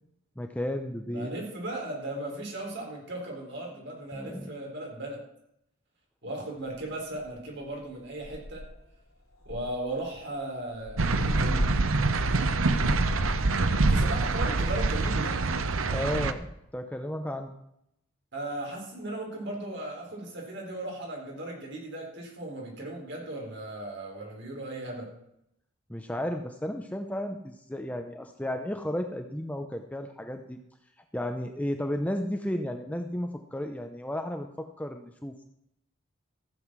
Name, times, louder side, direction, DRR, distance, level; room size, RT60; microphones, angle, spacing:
voice 1, 0.4-1.3 4.1-4.5 15.9-16.5 16.7-17.5 25.9-30.6 31.1-35.5, left 1 dB, 5° left, 5 dB, 0.6 m, -33 dB
voice 2, 1.1-5.2 6.2-8.6 9.5-11.8 13.8-15.4 18.3-25.1, right 1 dB, 50° right, 0 dB, 4.0 m, -37 dB
sound 1, 6.7-6.8 7.2-7.5 7.8-7.9 8.2-8.9 9.4-13.6, equal, 70° left, 2.4 m, -34 dB
sound 2, 11.0-16.3, right 3 dB, 70° right, 0.8 m, -25 dB
15.0 x 7.8 x 6.1 m, 0.77 s
head